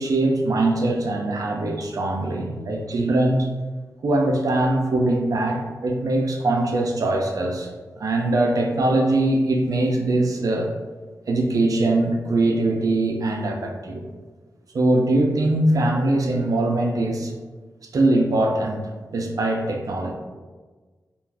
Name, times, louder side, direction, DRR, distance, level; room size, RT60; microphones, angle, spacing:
voice 1, 0.0-3.5 4.0-10.7 11.3-14.1 14.7-17.3 17.9-18.8 19.1-20.1, right 2 dB, 65° right, 2 dB, 0.5 m, -22 dB
2.4 x 2.4 x 3.3 m, 1.4 s
cardioid pair, 50°, 7 cm